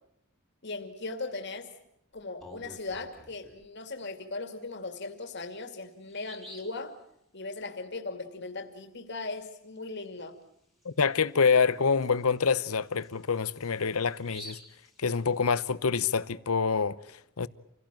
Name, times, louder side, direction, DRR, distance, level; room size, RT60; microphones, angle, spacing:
voice 1, 0.6-1.7 2.1-7.0 7.3-10.3, left 3 dB, 50° left, 2.5 m, -38 dB
Bird vocalization bird call bird song, 2.2-3.6 5.1-5.2 5.6-5.7 6.1-6.8 10.3-10.4 10.8-10.9 11.5-15.7, equal, ahead, 3.2 m, -51 dB
voice 2, 10.8-14.6 15.0-17.5, left 5 dB, 80° left, 0.9 m, -26 dB
28.0 x 17.0 x 9.1 m
head